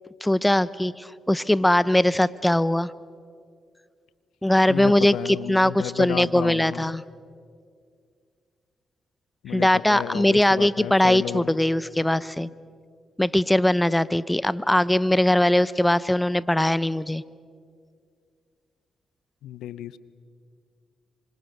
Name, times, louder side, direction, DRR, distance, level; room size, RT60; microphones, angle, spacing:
voice 1, 0.2-2.9 4.4-7.0 9.5-12.5 13.2-17.2, left 1 dB, 10° left, 18 dB, 0.9 m, -21 dB
voice 2, 4.7-7.0 9.4-11.5 19.4-20.0, left 11 dB, 85° left, 16 dB, 0.8 m, -33 dB
26.5 x 25.0 x 6.7 m, 2.2 s
supercardioid pair, 50°, 0 cm